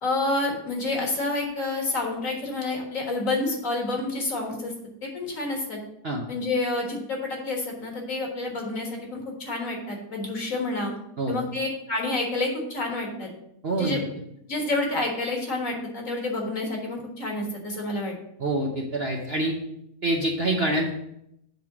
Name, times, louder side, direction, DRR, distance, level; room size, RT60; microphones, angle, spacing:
voice 1, 0.0-4.7 5.0-5.8 6.3-10.9 11.3-13.3 13.7-14.0 14.5-18.1, left 2 dB, 50° left, 0 dB, 1.9 m, -29 dB
voice 2, 13.6-14.0 18.4-19.5 20.0-20.9, right 1 dB, 50° right, 0 dB, 0.9 m, -26 dB
7.6 x 3.6 x 6.0 m, 0.78 s
omnidirectional pair, 1.8 m